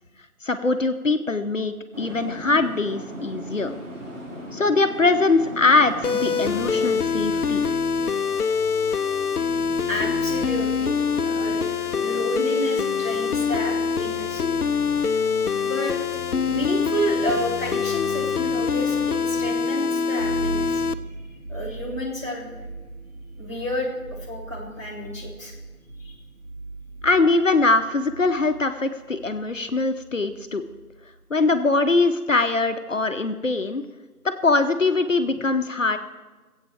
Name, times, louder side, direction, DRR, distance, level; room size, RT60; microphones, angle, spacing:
voice 1, 0.4-3.7 4.5-7.7 27.0-30.6 31.3-33.8 34.2-36.0, left 3 dB, 60° left, 8 dB, 0.9 m, -22 dB
sound 1, 1.9-6.9, equal, 55° right, 3.4 m, -36 dB
sound 2, 6.0-20.9, left 5 dB, 80° left, 0.7 m, -24 dB
voice 2, 9.9-14.4 15.6-15.9 16.5-20.8 21.5-22.5 23.4-25.5 26.0-26.2, equal, 10° right, -8 dB, 1.4 m, -30 dB
sound 3, 20.2-31.1, right 3 dB, 75° right, 2.9 m, -39 dB
20.5 x 8.3 x 4.5 m, 1.3 s
figure-of-eight pair, 165°, 44 cm